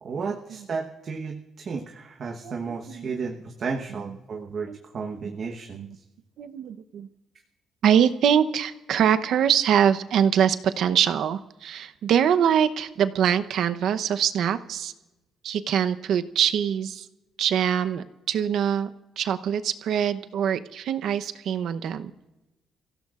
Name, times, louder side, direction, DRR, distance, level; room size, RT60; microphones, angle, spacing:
voice 1, 0.0-6.0, right 5 dB, 45° right, 2 dB, 1.1 m, -33 dB
voice 2, 6.4-7.1 7.8-14.9 15.4-17.1 17.4-18.9 19.2-22.1, right 8 dB, 70° right, 10 dB, 0.8 m, -23 dB
29.0 x 16.0 x 2.5 m, 1.0 s
cardioid pair, 130°, 0 cm